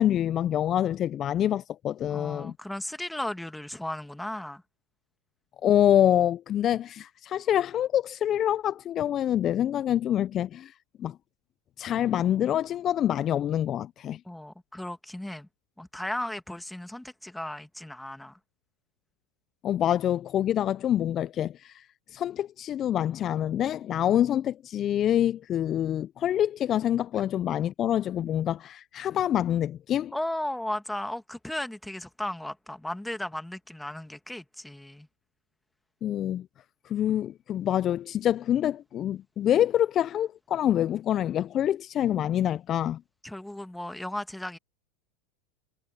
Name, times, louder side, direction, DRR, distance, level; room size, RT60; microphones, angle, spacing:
voice 1, 0.0-2.5 5.6-10.7 11.0-11.2 11.8-14.2 19.6-21.8 22.1-30.1 36.0-36.5 36.8-43.0, left 11 dB, 35° left, 0.9 m, -26 dB
voice 2, 2.1-4.6 14.2-15.5 15.8-18.4 28.2-28.3 30.1-35.1 43.2-44.6, left 1 dB, 5° left, 2.3 m, -35 dB
hypercardioid pair, 90°, 0 cm